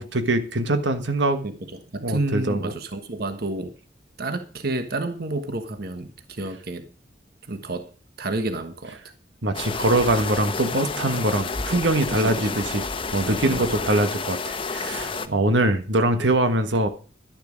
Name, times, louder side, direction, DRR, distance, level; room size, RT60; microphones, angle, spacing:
voice 1, 0.0-1.4 2.0-2.7 9.4-12.8 13.1-16.9, right 1 dB, 75° right, 9 dB, 1.4 m, -23 dB
voice 2, 1.4-3.7 4.2-6.9 7.5-7.9 8.2-9.0 12.1-12.6 13.2-13.7 15.2-15.4, right 2 dB, 55° right, 8 dB, 1.3 m, -30 dB
sound 1, 9.5-15.3, left 4 dB, 30° left, 1.0 m, -30 dB
12.0 x 10.5 x 5.2 m, 0.38 s
head